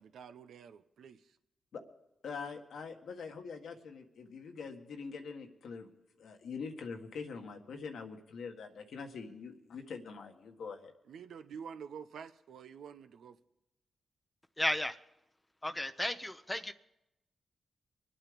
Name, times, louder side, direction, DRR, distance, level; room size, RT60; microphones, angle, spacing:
voice 1, 0.0-1.3 11.1-13.4, right 7 dB, 85° right, 10 dB, 0.8 m, -48 dB
voice 2, 2.2-5.9 6.2-10.9, left 5 dB, 80° left, 4 dB, 1.7 m, -44 dB
voice 3, 14.6-15.0 15.6-16.7, left 1 dB, 15° left, 9 dB, 0.7 m, -33 dB
24.0 x 8.7 x 5.2 m, 0.88 s
cardioid pair, 55°, 0 cm